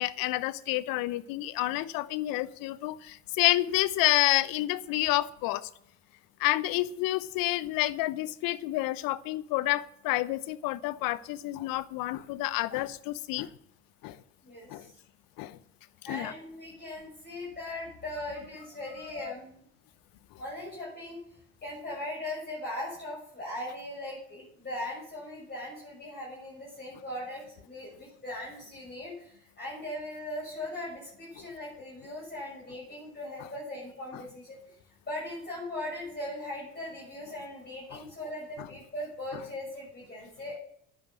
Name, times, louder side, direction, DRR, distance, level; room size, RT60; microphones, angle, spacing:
voice 1, 0.0-5.7 6.4-13.5 14.0-14.2 14.7-14.8 15.4-15.6 16.1-16.3 19.1-19.3 31.4-31.5 37.9-38.0 38.6-38.7, left 17 dB, 65° left, 16 dB, 0.8 m, -29 dB
voice 2, 14.4-14.9 16.0-19.5 20.4-21.2 21.6-34.6 35.0-40.6, left 1 dB, 25° left, -5 dB, 6.6 m, -39 dB
10.5 x 9.8 x 6.2 m, 0.71 s
hypercardioid pair, 60°, 37 cm